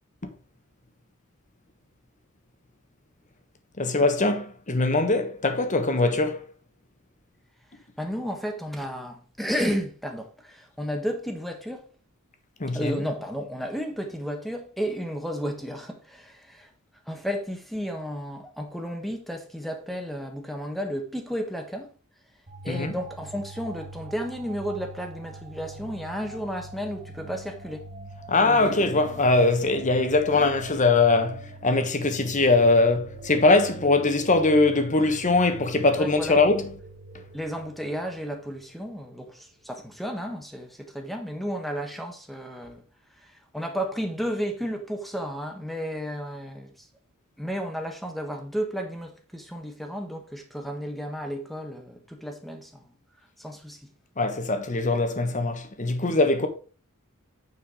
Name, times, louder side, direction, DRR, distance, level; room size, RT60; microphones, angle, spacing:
voice 1, 3.8-6.4 12.6-12.9 22.7-22.9 28.3-36.7 54.2-56.5, left 3 dB, 35° left, 1.2 m, -22 dB
voice 2, 8.0-11.9 12.7-16.7 17.1-21.9 22.6-27.9 28.4-28.9 36.0-36.5 37.3-42.8 43.2-46.9 47.4-52.9 53.4-53.9 56.0-56.1, equal, ahead, 1.4 m, -33 dB
sound 1, 22.5-38.8, right 2 dB, 35° right, 1.4 m, -43 dB
8.9 x 4.6 x 4.8 m
head